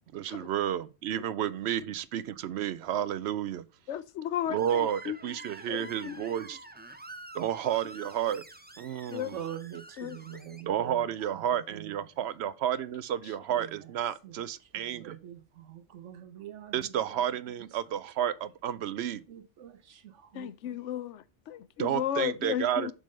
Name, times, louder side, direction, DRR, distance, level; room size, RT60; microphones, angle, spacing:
voice 1, 0.1-3.6 4.5-6.6 7.3-8.4 8.8-9.4 10.7-15.2 16.7-19.2 21.8-22.9, right 10 dB, 70° right, 0.8 m, -31 dB
voice 2, 3.9-6.2 9.1-9.3 10.0-10.2 10.5-10.6 20.3-22.9, left 10 dB, 80° left, 0.9 m, -35 dB
Screech, 4.6-10.6, right 2 dB, 15° right, 0.4 m, -48 dB
voice 3, 9.3-11.9 13.5-13.7 14.2-14.4 14.7-17.1 19.3-20.8, right 10 dB, 85° right, 1.1 m, -44 dB
7.5 x 3.8 x 6.3 m
omnidirectional pair, 1.2 m